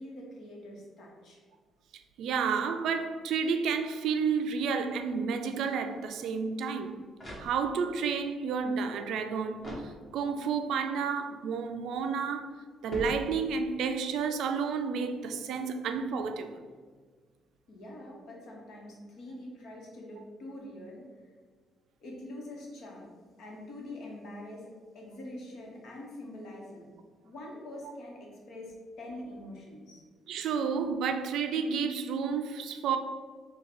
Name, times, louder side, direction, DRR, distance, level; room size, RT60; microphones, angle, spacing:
voice 1, 0.0-1.4 17.7-21.1 22.0-26.9 27.2-30.0, left 1 dB, 70° left, 1.1 m, -45 dB
voice 2, 2.2-7.0 7.4-12.5 12.8-16.6 30.3-33.0, right 6 dB, 80° right, 0.3 m, -31 dB
sound 1, 7.1-8.0 9.6-10.5 12.9-13.8, equal, 25° left, 1.4 m, -42 dB
3.7 x 2.3 x 4.5 m
cardioid pair, 90°, 0 cm